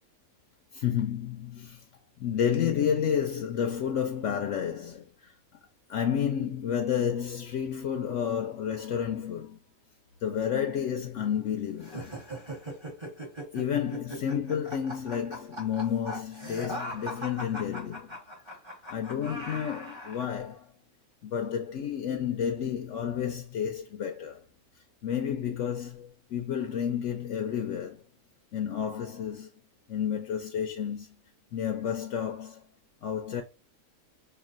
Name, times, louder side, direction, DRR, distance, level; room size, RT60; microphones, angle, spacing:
voice 1, 0.7-1.8 2.2-5.3 5.9-9.6 10.2-12.2 13.5-18.2 18.9-20.7 21.2-24.4 25.0-28.0 28.5-29.5 29.9-31.1 31.5-32.7 33.0-33.4, left 8 dB, 70° left, 0.8 m, -31 dB
sound 1, 11.8-20.3, equal, 20° right, 1.2 m, -39 dB
5.8 x 2.4 x 2.5 m
omnidirectional pair, 1.4 m